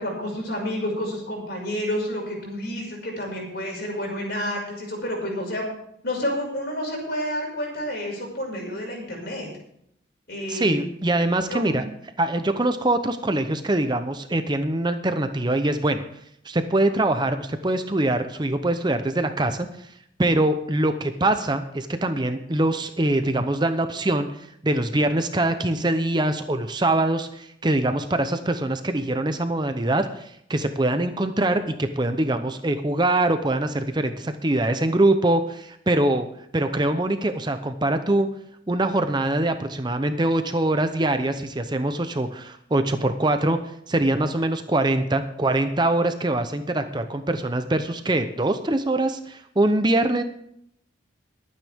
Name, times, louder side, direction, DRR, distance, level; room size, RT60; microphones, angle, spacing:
voice 1, 0.0-5.7 6.0-9.5 10.3-10.9 11.5-11.8, equal, 55° left, 0 dB, 5.7 m, -29 dB
voice 2, 10.5-11.8 12.2-16.0 16.4-19.9 20.2-36.3 36.5-38.3 38.7-43.6 43.9-50.2, right 1 dB, 20° right, 8 dB, 0.7 m, -23 dB
22.0 x 9.2 x 3.6 m, 0.72 s
head